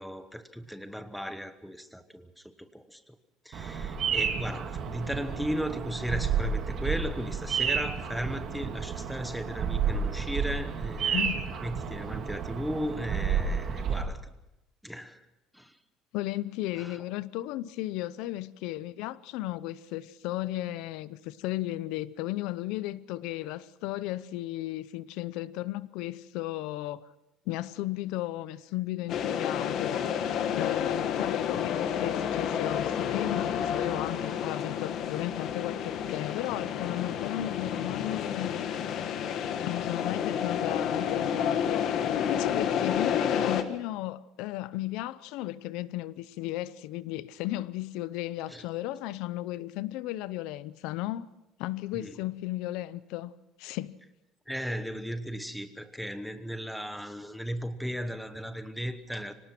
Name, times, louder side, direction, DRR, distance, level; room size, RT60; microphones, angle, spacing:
voice 1, 0.0-3.2 3.4-11.3 11.6-14.2 14.8-15.2 15.5-15.8 16.8-17.0 48.5-48.6 51.9-52.2 54.5-59.3, equal, ahead, 1.1 m, -36 dB
Bird vocalization bird call bird song, 3.5-14.0, right 6 dB, 35° right, 2.2 m, -31 dB
voice 2, 16.1-27.1 27.5-30.1 30.5-38.6 39.6-51.3 51.6-53.3 53.6-54.0, left 16 dB, 70° left, 0.6 m, -35 dB
sound 1, 29.1-43.6, left 8 dB, 45° left, 1.4 m, -30 dB
25.0 x 18.0 x 6.0 m
cardioid pair, 170°, 0 cm